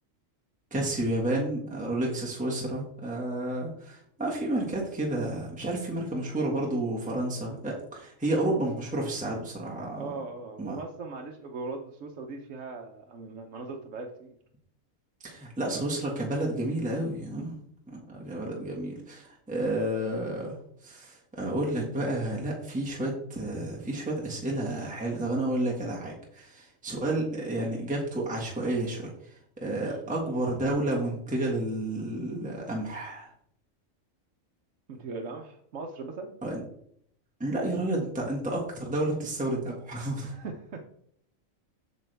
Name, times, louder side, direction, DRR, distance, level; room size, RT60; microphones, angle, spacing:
voice 1, 0.7-10.1 10.6-10.8 15.2-17.5 17.9-20.6 20.8-29.1 29.6-33.3 36.4-36.6 37.4-40.3, right 1 dB, 5° right, -3 dB, 1.6 m, -31 dB
voice 2, 9.9-14.4 17.3-17.6 29.6-30.0 34.9-36.4 40.2-40.8, right 3 dB, 70° right, 2 dB, 1.2 m, -39 dB
8.2 x 6.4 x 3.4 m, 0.67 s
omnidirectional pair, 1.4 m